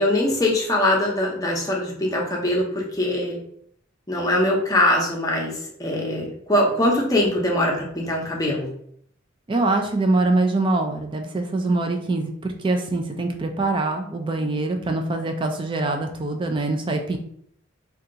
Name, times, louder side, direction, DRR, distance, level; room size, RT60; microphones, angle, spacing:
voice 1, 0.0-3.4 4.1-5.5 5.8-8.7, left 1 dB, 20° left, -2 dB, 0.7 m, -22 dB
voice 2, 9.5-17.2, right 2 dB, 25° right, 4 dB, 0.3 m, -24 dB
2.7 x 2.3 x 3.8 m, 0.66 s
head